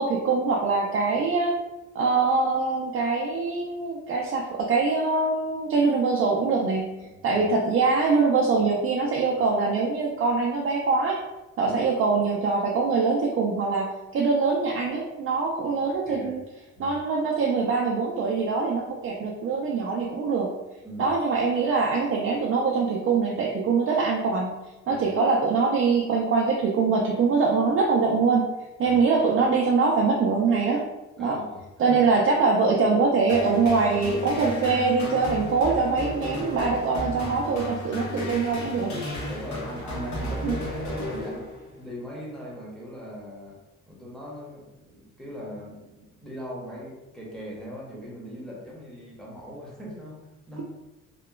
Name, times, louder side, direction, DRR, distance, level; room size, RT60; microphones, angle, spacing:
voice 1, 0.0-1.6 1.9-6.9 7.2-11.2 11.6-16.4 16.8-20.5 21.0-24.5 24.9-28.5 28.8-30.8 31.2-31.4 31.8-39.0 40.4-40.5, right 4 dB, 45° right, -1 dB, 0.4 m, -23 dB
voice 2, 7.0-7.4 11.6-11.8 15.7-15.8 16.1-16.3 16.8-17.0 20.8-21.1 24.9-25.1 28.8-29.0 31.2-32.0 39.3-41.5 41.8-43.6 43.9-50.6, equal, ahead, -5 dB, 0.9 m, -40 dB
sound 1, 33.3-41.8, left 1 dB, 65° left, 1.0 m, -33 dB
2.8 x 2.1 x 2.3 m, 1.0 s
cardioid pair, 90°, 30 cm